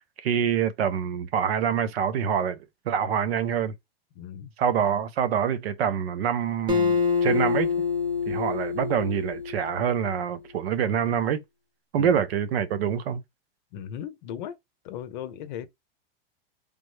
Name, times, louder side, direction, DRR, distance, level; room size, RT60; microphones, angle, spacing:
voice 1, 0.2-2.6 2.9-3.7 4.6-7.7 8.3-11.4 11.9-13.2, right 8 dB, 85° right, 0.7 m, -26 dB
voice 2, 4.2-4.5 12.0-12.3 13.7-14.6 14.8-15.7, left 9 dB, 50° left, 0.6 m, -37 dB
Acoustic guitar, 6.7-10.1, left 5 dB, 15° right, 0.5 m, -26 dB
3.4 x 2.0 x 3.2 m
supercardioid pair, 150°, 30 cm